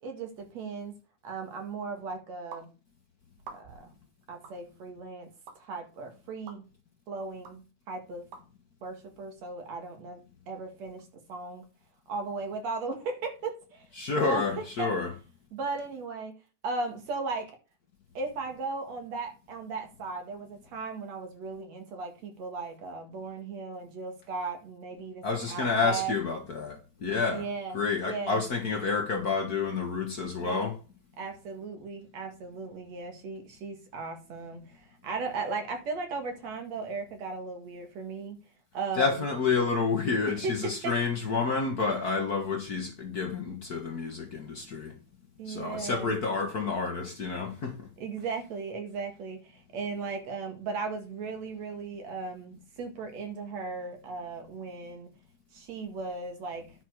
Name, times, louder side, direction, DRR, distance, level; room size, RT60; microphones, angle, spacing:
voice 1, 0.0-0.9 1.2-2.7 3.5-3.9 4.3-5.3 5.6-6.6 7.1-8.2 8.8-10.2 10.5-11.6 12.1-13.9 14.1-14.4 14.8-14.9 15.5-16.3 16.6-17.5 18.1-26.1 27.3-27.7 28.0-28.4 30.4-30.6 31.2-38.4 38.7-39.3 40.3-40.9 45.4-46.1 48.0-55.1 55.5-56.7, right 4 dB, 65° right, 3.0 m, -36 dB
sound 1, 2.5-2.7 3.4-3.9 4.4-4.6 5.5-5.6 6.5-6.6 7.4-7.6 8.3-8.4, right 5 dB, 85° right, 3.1 m, -45 dB
voice 2, 14.0-15.1 25.2-27.5 27.7-30.7 39.0-45.0 45.4-47.9, left 4 dB, 55° left, 1.1 m, -29 dB
10.0 x 6.1 x 4.6 m
omnidirectional pair, 3.4 m